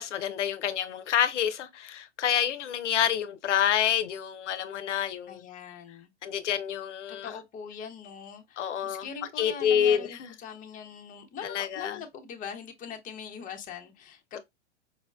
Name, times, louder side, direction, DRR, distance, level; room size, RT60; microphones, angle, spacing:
voice 1, 0.0-5.4 6.2-7.3 8.6-9.1 9.4-10.3 11.4-12.0, left 9 dB, 80° left, 0.5 m, -28 dB
voice 2, 5.3-6.1 7.1-14.4, left 6 dB, 25° left, 0.7 m, -42 dB
4.7 x 2.1 x 2.2 m
hypercardioid pair, 100°, 35 cm